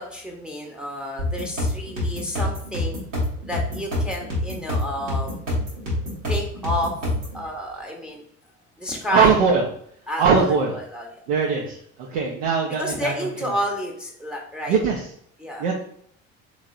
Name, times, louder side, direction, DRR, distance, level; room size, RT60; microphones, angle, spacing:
voice 1, 0.0-3.0 3.5-5.4 6.3-6.9 7.3-8.2 8.8-9.4 10.1-11.1 12.8-14.8 15.4-15.7, left 1 dB, ahead, -1 dB, 0.8 m, -30 dB
sound 1, 1.2-7.4, left 1 dB, 85° right, 1.5 m, -26 dB
voice 2, 9.1-9.6 10.2-10.8 11.3-13.1 13.4-13.5 14.7-15.1 15.6-15.7, right 5 dB, 70° right, -1 dB, 0.6 m, -20 dB
3.6 x 3.2 x 2.4 m, 0.67 s
figure-of-eight pair, 60°, 37 cm